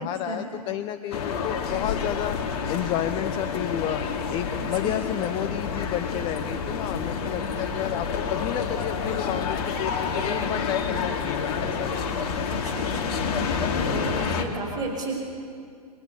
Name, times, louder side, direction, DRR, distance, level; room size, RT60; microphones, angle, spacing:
voice 1, 0.0-2.4 2.7-4.0 4.3-12.3 12.6-12.7, left 12 dB, 25° left, 11 dB, 0.8 m, -31 dB
sound 1, 1.1-14.4, left 5 dB, 40° left, 2.8 m, -28 dB
voice 2, 12.5-13.5 13.8-15.1, right 3 dB, 20° right, 0 dB, 5.5 m, -34 dB
29.5 x 22.5 x 8.5 m, 2.2 s
figure-of-eight pair, 120°, 20 cm